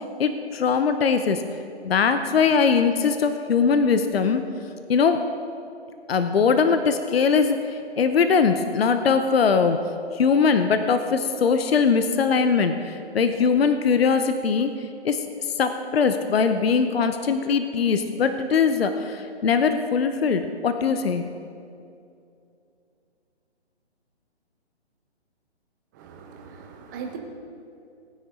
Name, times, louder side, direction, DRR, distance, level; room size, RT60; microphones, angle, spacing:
voice 1, 0.2-1.4 1.8-4.4 4.9-5.2 6.1-9.8 10.1-14.7 15.0-21.3, left 5 dB, 60° left, 8 dB, 0.8 m, -21 dB
voice 2, 25.9-27.2, right 6 dB, 15° right, 2 dB, 0.9 m, -39 dB
18.0 x 9.5 x 3.7 m, 2.5 s
hypercardioid pair, 160°, 33 cm